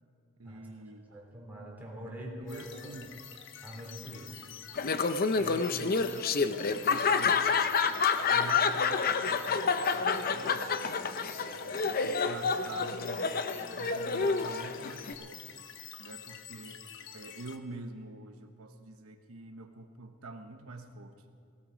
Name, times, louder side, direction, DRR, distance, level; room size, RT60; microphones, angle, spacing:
voice 1, 0.4-1.3 2.4-3.1 5.3-10.7 11.3-13.4 13.7-15.6 16.0-16.8 17.1-21.4, right 2 dB, 90° right, 6 dB, 1.1 m, -46 dB
voice 2, 1.1-3.0 3.6-4.5, equal, 10° right, -3 dB, 3.7 m, -44 dB
sound 1, 2.5-17.6, left 9 dB, 60° left, 1.1 m, -48 dB
Laughter, 4.8-15.1, left 5 dB, 45° left, 0.6 m, -29 dB
17.0 x 17.0 x 5.0 m, 2.4 s
head